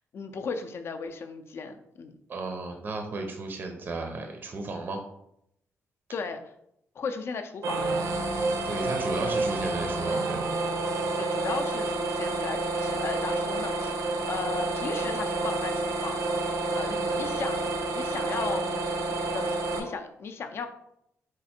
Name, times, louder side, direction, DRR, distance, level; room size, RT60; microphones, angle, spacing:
voice 1, 0.1-2.2 6.1-6.5 7.0-8.3 11.2-13.9 14.3-16.2 16.7-20.7, left 5 dB, 50° left, 7 dB, 0.4 m, -36 dB
voice 2, 2.3-5.0 8.6-10.5 16.9-17.3, right 3 dB, 40° right, 3 dB, 0.5 m, -34 dB
sound 1, 7.6-19.8, right 2 dB, 85° right, 0.7 m, -29 dB
4.3 x 2.4 x 4.2 m, 0.77 s
cardioid pair, 130°, 5 cm